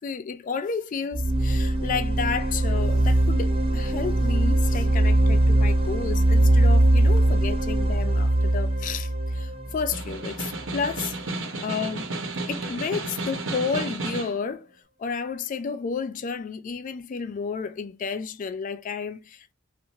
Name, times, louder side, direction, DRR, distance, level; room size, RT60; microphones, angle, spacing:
voice 1, 0.0-11.2 11.6-12.1 12.5-14.7 15.0-19.5, left 5 dB, 45° left, 0.3 m, -31 dB
sound 1, 1.1-10.9, right 1 dB, 30° right, 0.4 m, -21 dB
Snare drum, 9.8-14.4, right 2 dB, 70° right, 0.9 m, -32 dB
2.6 x 2.5 x 2.8 m
head